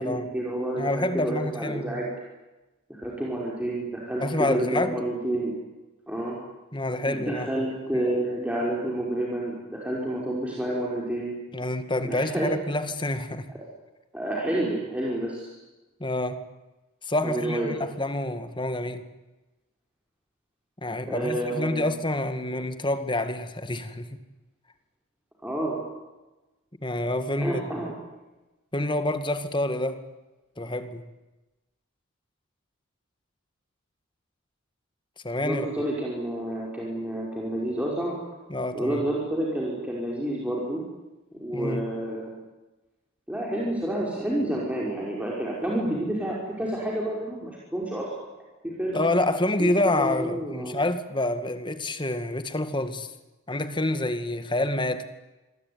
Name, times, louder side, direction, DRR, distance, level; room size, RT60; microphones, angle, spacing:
voice 1, 0.0-2.1 2.9-5.5 6.1-6.4 7.0-11.3 12.0-12.5 13.5-13.6 14.1-15.6 17.2-17.7 21.1-21.9 25.4-25.8 27.4-28.0 30.7-30.8 35.4-38.2 38.7-40.8 41.4-42.3 43.3-48.1 48.6-49.0 49.6-50.8, right 1 dB, 5° right, 5.1 m, -29 dB
voice 2, 0.8-2.0 4.2-5.0 6.7-7.5 8.0-8.1 11.5-13.5 16.0-16.4 17.0-19.1 20.8-24.1 26.8-27.6 28.7-30.0 30.6-31.0 35.2-35.7 38.5-39.0 41.5-41.8 48.9-53.1 53.5-55.0, left 1 dB, 20° left, 2.0 m, -27 dB
27.5 x 22.5 x 9.7 m
head